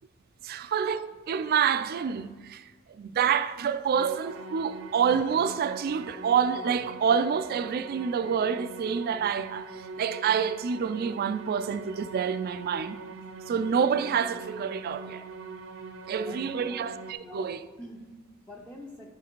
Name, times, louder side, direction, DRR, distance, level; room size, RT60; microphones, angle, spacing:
voice 1, 0.4-13.0 13.5-15.2 16.1-17.6, right 7 dB, 50° right, 0.3 m, -27 dB
sound 1, 3.9-17.1, right 4 dB, 75° right, 0.7 m, -43 dB
voice 2, 16.1-16.9 17.2-19.1, left 1 dB, 5° left, 0.5 m, -45 dB
10.0 x 4.8 x 4.5 m
head